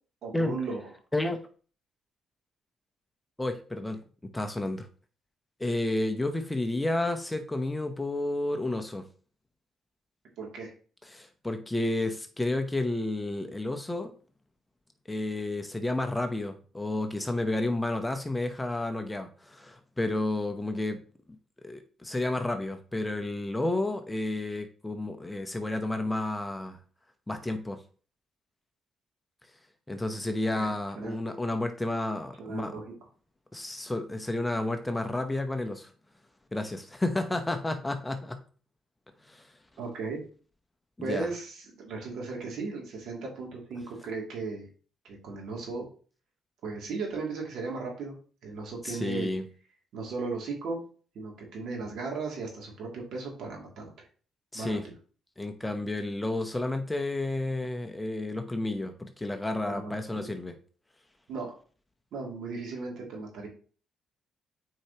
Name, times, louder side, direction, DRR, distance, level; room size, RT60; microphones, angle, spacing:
voice 1, 0.2-0.9 10.4-10.7 30.5-31.2 32.4-32.9 39.8-40.2 41.0-44.7 45.1-45.8 46.6-48.1 48.4-49.3 49.9-50.8 51.1-53.8 54.5-54.8 59.6-60.3 61.3-61.5 62.1-63.5, right 4 dB, 75° right, 0 dB, 2.5 m, -36 dB
voice 2, 3.4-4.9 5.6-9.1 11.1-14.1 15.1-21.0 21.3-21.4 21.6-26.8 27.3-27.8 29.9-32.8 33.5-35.9 36.5-38.4 39.3-39.4 41.0-41.3 48.8-49.5 54.5-54.8 55.4-60.6, left 2 dB, 10° left, 6 dB, 0.8 m, -31 dB
8.7 x 4.6 x 2.9 m, 0.40 s
cardioid pair, 90°, 0 cm